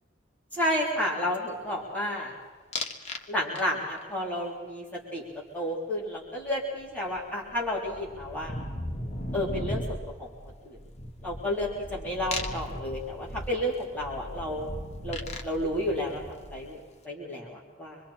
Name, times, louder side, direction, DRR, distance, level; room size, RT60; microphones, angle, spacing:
voice 1, 0.6-2.3 3.3-4.9 5.1-5.2 5.5-8.5 9.3-10.3 10.6-10.8 11.2-14.7 15.0-15.2 15.4-18.0, left 1 dB, 10° left, -6 dB, 3.5 m, -31 dB
sound 1, 2.7-3.2 3.6-4.0 6.5-6.6 6.8-16.9, left 1 dB, 35° left, 1.3 m, -37 dB
26.5 x 23.0 x 4.4 m, 1.3 s
head